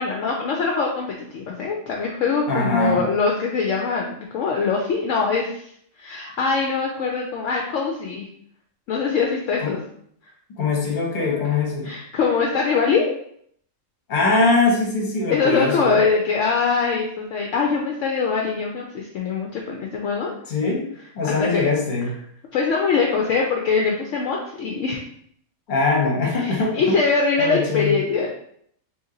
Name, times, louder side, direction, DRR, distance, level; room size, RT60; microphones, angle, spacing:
voice 1, 0.0-5.7 6.0-8.3 8.9-9.8 11.2-11.4 11.8-13.1 15.3-20.3 21.2-21.6 22.5-25.0 26.3-28.3, left 5 dB, 70° left, -1 dB, 0.8 m, -23 dB
voice 2, 2.5-3.1 9.6-9.8 10.6-11.9 14.1-15.9 20.5-20.9 21.1-22.1 25.7-27.0 27.4-28.0, left 3 dB, 40° left, -2 dB, 1.0 m, -22 dB
2.9 x 2.8 x 3.7 m, 0.66 s
omnidirectional pair, 1.5 m